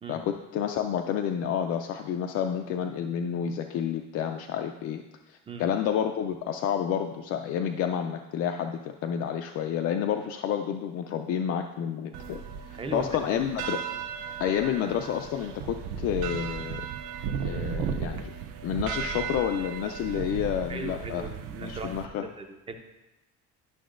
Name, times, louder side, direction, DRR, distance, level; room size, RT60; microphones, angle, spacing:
voice 1, 0.1-13.8 14.4-16.8 17.4-18.3 18.6-21.2 21.6-22.3, left 9 dB, 50° left, 4 dB, 0.4 m, -30 dB
sound 1, 12.1-22.1, right 7 dB, 75° right, 0.6 m, -35 dB
voice 2, 12.7-13.4 20.7-21.9 22.2-22.7, right 3 dB, 20° right, 5 dB, 0.5 m, -38 dB
11.5 x 6.0 x 2.5 m, 0.98 s
cardioid pair, 170°, 30 cm